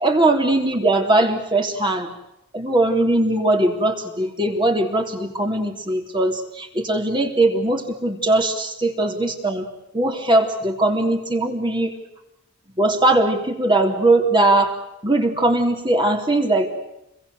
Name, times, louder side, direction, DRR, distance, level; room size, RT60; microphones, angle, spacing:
voice 1, 0.0-2.1 2.5-9.7 9.9-12.0 12.8-14.8 15.0-16.7, right 2 dB, 20° right, 3 dB, 3.3 m, -20 dB
29.0 x 22.5 x 8.1 m, 0.89 s
head